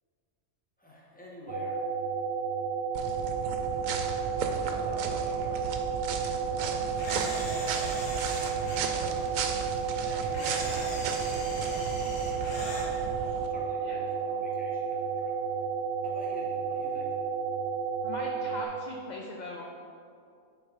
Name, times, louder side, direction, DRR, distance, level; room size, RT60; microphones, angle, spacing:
voice 1, 0.8-1.8 4.6-5.8 6.4-7.0 7.5-9.2 10.0-12.7 13.3-15.5 16.0-17.1, equal, 5° left, -4 dB, 1.3 m, -48 dB
sound 1, 1.5-18.6, right 6 dB, 60° right, 0.8 m, -32 dB
sound 2, 2.9-13.5, right 6 dB, 80° right, 1.0 m, -36 dB
Camera, 7.0-8.9 10.3-12.9, left 1 dB, 75° left, 1.9 m, -40 dB
voice 2, 18.0-19.6, left 2 dB, 50° left, 0 dB, 0.6 m, -40 dB
10.0 x 4.0 x 4.7 m, 2.4 s
omnidirectional pair, 1.4 m